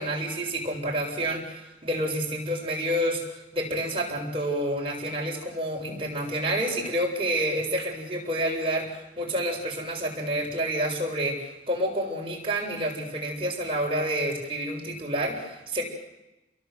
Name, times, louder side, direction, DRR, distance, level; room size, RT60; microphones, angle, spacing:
voice 1, 0.0-15.8, right 1 dB, 30° right, 0 dB, 7.2 m, -29 dB
29.5 x 22.5 x 8.1 m, 0.96 s
head